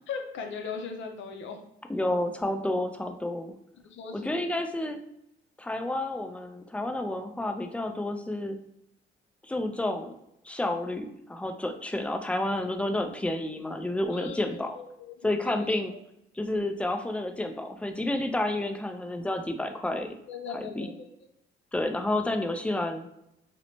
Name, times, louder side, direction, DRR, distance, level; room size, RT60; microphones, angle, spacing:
voice 1, 0.1-1.6 3.8-4.4 14.1-15.1 15.4-15.6 15.9-16.0 20.3-21.1, left 5 dB, 70° left, 5 dB, 0.5 m, -38 dB
voice 2, 1.9-3.5 4.1-5.0 5.6-8.6 9.4-10.1 10.4-14.7 15.2-15.9 16.4-20.1 20.8-20.9 21.7-23.1, left 1 dB, 5° left, 6 dB, 0.3 m, -30 dB
2.6 x 2.1 x 2.9 m, 0.78 s
cardioid pair, 90°, 20 cm